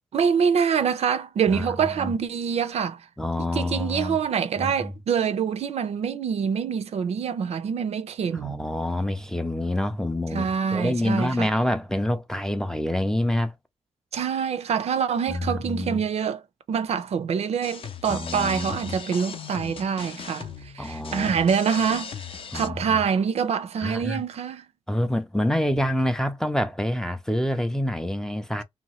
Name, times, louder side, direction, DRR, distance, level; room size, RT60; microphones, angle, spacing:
voice 1, 0.1-3.1 3.4-8.6 10.3-11.5 14.1-16.4 16.7-22.3 22.5-24.6, right 7 dB, 70° right, 0.5 m, -25 dB
voice 2, 1.5-2.1 3.2-4.2 4.6-4.9 8.3-13.5 15.3-16.0 18.1-18.9 20.8-21.5 22.5-23.0 23.8-24.2 24.9-28.6, left 1 dB, 5° left, 0.4 m, -27 dB
sound 1, 17.6-22.7, left 6 dB, 55° left, 0.5 m, -38 dB
2.8 x 2.2 x 3.0 m
wide cardioid pair, 145°, 11 cm